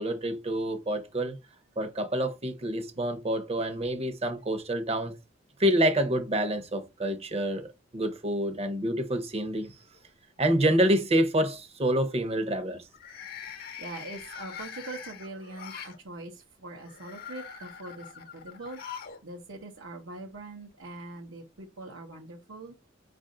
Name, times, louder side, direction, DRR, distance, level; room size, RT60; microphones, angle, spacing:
voice 1, 0.0-1.4 1.8-5.2 5.6-9.7 10.4-12.8, right 1 dB, 30° right, 0.8 m, -27 dB
sound 1, 9.4-10.0 10.4-10.8 12.9-16.0 16.8-19.2 19.5-19.6 20.7-20.8, left 7 dB, 50° left, 0.8 m, -43 dB
voice 2, 13.8-22.7, right 2 dB, 70° right, 0.9 m, -43 dB
5.1 x 2.6 x 3.7 m
head